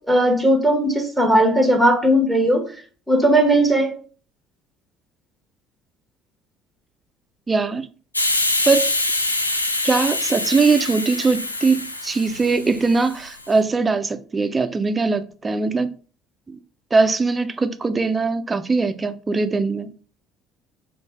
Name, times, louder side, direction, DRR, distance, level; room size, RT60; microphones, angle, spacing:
voice 1, 0.1-2.7 3.1-4.0, right 1 dB, ahead, 0.9 m, -17 dB
voice 2, 7.5-7.9 8.7-8.9 9.8-15.9 16.5-16.6 16.9-19.9, right 4 dB, 25° right, 0.5 m, -21 dB
Hiss, 8.1-13.5, left 2 dB, 85° left, 0.3 m, -25 dB
3.2 x 2.6 x 4.4 m
figure-of-eight pair, 55°, 0 cm